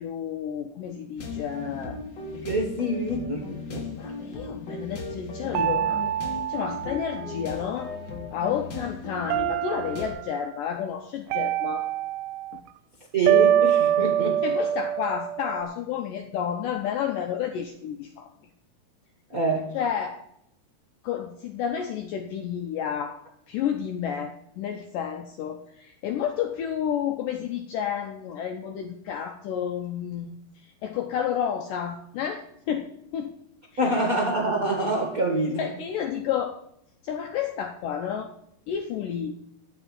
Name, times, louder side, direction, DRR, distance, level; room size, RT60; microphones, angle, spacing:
voice 1, 0.0-2.0 3.9-6.0 6.5-7.9 8.3-11.9 12.5-12.6 14.0-14.1 14.4-18.3 19.7-20.2 21.0-23.2 23.5-33.4 33.7-34.0 35.6-36.6 37.0-38.3 38.7-39.3, left 8 dB, 80° left, 5 dB, 2.0 m, -31 dB
sound 1, 1.2-10.1, left 3 dB, 60° left, 1.2 m, -37 dB
voice 2, 2.3-3.8 13.1-14.4 19.3-19.7 33.8-35.6, right 1 dB, 40° right, 0 dB, 1.3 m, -26 dB
sound 2, 5.5-7.9 9.3-10.3 11.3-12.6 13.3-15.6, right 11 dB, 80° right, 2.4 m, -25 dB
13.0 x 5.2 x 8.9 m, 0.76 s
omnidirectional pair, 4.5 m